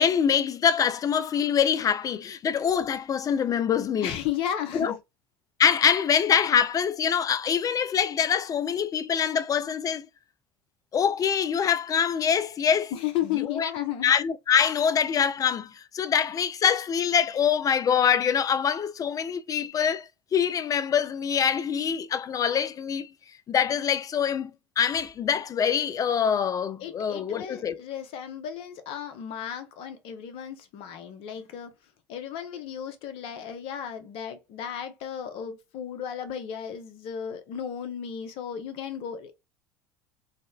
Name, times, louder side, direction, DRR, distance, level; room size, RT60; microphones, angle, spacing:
voice 1, 0.0-4.1 4.7-4.9 5.6-10.1 10.9-12.9 13.6-13.7 14.0-23.1 23.5-27.8, left 7 dB, 35° left, 0.4 m, -24 dB
voice 2, 4.0-5.0 12.9-14.1 26.8-31.7 32.1-39.3, left 9 dB, 60° left, 0.8 m, -34 dB
4.9 x 2.1 x 2.3 m
hypercardioid pair, 75°, 11 cm